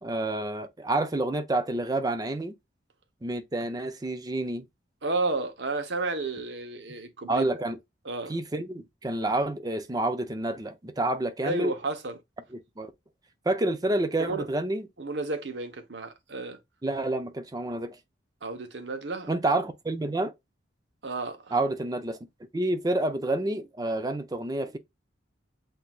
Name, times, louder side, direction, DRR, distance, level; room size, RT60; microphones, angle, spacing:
voice 1, 0.0-2.5 3.2-4.7 7.3-7.8 8.3-11.7 12.5-12.9 13.5-14.9 16.8-18.0 19.3-20.3 21.5-22.2 22.5-24.8, right 2 dB, 20° right, 0.5 m, -28 dB
voice 2, 5.0-7.5 8.0-8.4 11.4-12.2 14.2-14.4 15.0-16.6 18.4-19.3 21.0-21.6, right 3 dB, 75° right, 1.0 m, -32 dB
7.8 x 2.7 x 2.3 m
head